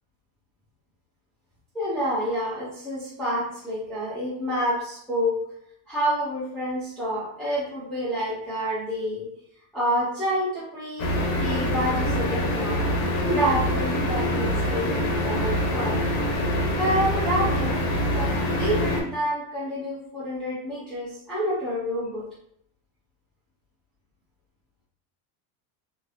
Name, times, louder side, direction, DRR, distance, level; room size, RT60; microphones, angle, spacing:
voice 1, 1.7-5.4 5.9-9.3 9.7-12.9 13.2-16.0 16.8-17.8 18.1-22.2, equal, ahead, -11 dB, 0.6 m, -28 dB
sound 1, 11.0-19.0, left 1 dB, 65° left, 1.0 m, -25 dB
2.8 x 2.4 x 3.2 m, 0.71 s
cardioid pair, 160°, 47 cm